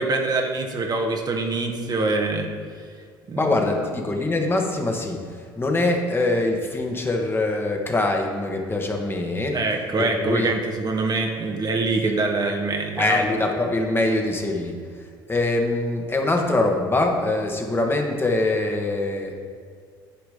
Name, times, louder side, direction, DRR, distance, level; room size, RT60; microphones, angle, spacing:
voice 1, 0.0-2.5 3.3-3.5 9.5-13.2, right 3 dB, 40° right, 3 dB, 1.3 m, -24 dB
voice 2, 3.3-5.2 5.6-9.6 10.0-10.5 12.0-12.1 13.0-14.8 15.3-19.3, left 2 dB, 20° left, 2 dB, 1.5 m, -23 dB
10.0 x 4.9 x 5.0 m, 2.1 s
hypercardioid pair, 65°, 11 cm